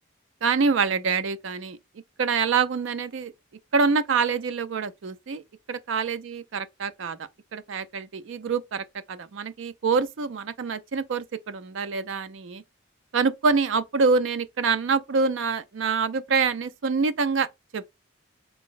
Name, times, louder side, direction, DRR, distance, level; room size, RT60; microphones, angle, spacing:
voice 1, 0.4-1.8 2.2-3.3 3.7-5.4 5.7-12.6 13.1-17.5 17.7-17.9, right 5 dB, 75° right, 0.4 m, -26 dB
3.4 x 2.0 x 3.8 m
head